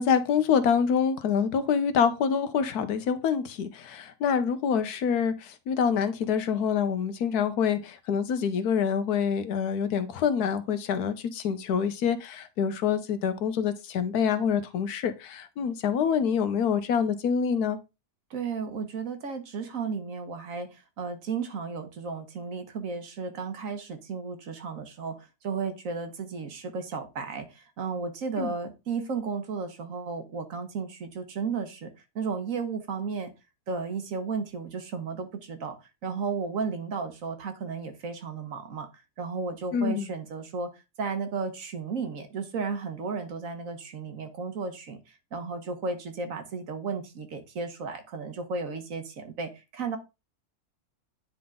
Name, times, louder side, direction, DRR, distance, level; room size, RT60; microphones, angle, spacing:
voice 1, 0.0-17.8 28.4-28.5 39.7-40.1, left 7 dB, 80° left, 1.3 m, -26 dB
voice 2, 18.3-33.3 33.7-35.8 36.0-38.9 39.2-40.7 41.0-45.0 45.3-50.0, right 5 dB, 60° right, 1.3 m, -34 dB
9.6 x 3.9 x 3.6 m
omnidirectional pair, 1.7 m